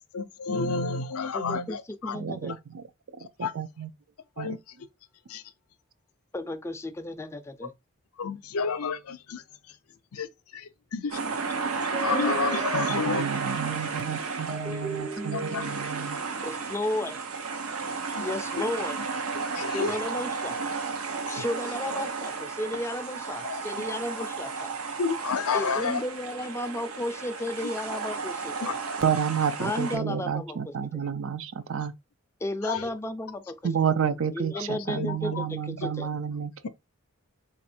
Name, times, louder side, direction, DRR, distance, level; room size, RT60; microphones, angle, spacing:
voice 1, 0.1-2.2 3.4-3.5 4.4-4.6 5.3-5.4 8.2-9.4 10.1-10.3 10.5-11.2 12.0-13.2 15.3-15.6 18.2-18.3 19.5-20.0 21.3-21.4 23.4-23.6 25.0-26.0 27.6-27.7 28.6-28.7 32.6-32.9 35.0-35.5, left 5 dB, 90° left, 0.5 m, -30 dB
voice 2, 1.3-1.8 2.0-2.5 6.3-7.7 16.4-17.2 18.2-19.0 19.6-20.6 21.3-24.7 25.5-28.7 29.6-30.6 32.4-33.6 34.3-36.1, left 1 dB, 15° left, 0.4 m, -33 dB
voice 3, 2.1-2.9 3.1-3.9 4.4-4.6 12.7-16.2 29.0-31.9 33.6-36.7, right 7 dB, 65° right, 0.5 m, -30 dB
sound 1, 11.1-30.0, right 4 dB, 80° right, 0.8 m, -33 dB
sound 2, 11.7-13.5 14.5-16.2, right 2 dB, 50° right, 1.0 m, -37 dB
4.0 x 2.6 x 4.2 m
head